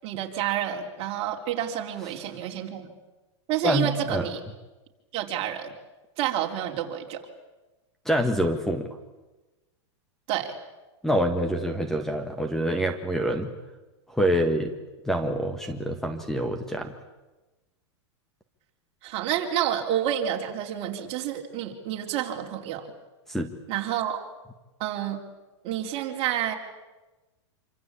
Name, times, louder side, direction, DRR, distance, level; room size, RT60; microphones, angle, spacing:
voice 1, 0.0-2.9 3.5-4.4 5.1-5.7 6.2-7.2 10.3-10.5 19.0-22.9 23.7-24.3 24.8-25.2 25.6-26.5, right 10 dB, 40° right, 2 dB, 4.1 m, -29 dB
voice 2, 3.6-4.2 8.0-8.9 11.0-13.5 14.1-14.7 15.0-16.9 23.3-23.5, equal, ahead, 6 dB, 1.5 m, -26 dB
27.0 x 25.5 x 8.6 m, 1.1 s
supercardioid pair, 145°, 15 cm